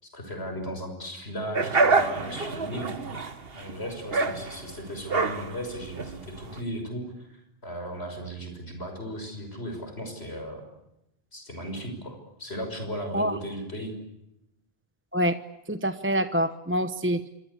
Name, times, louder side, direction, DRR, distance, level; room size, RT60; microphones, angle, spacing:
voice 1, 0.0-2.9 3.5-10.6 11.3-13.9, equal, 85° left, 5 dB, 6.4 m, -36 dB
sound 1, 1.5-6.6, right 3 dB, 65° right, 1.8 m, -27 dB
voice 2, 15.7-17.3, equal, 10° right, 10 dB, 0.9 m, -26 dB
27.5 x 24.5 x 8.4 m, 0.87 s
omnidirectional pair, 1.1 m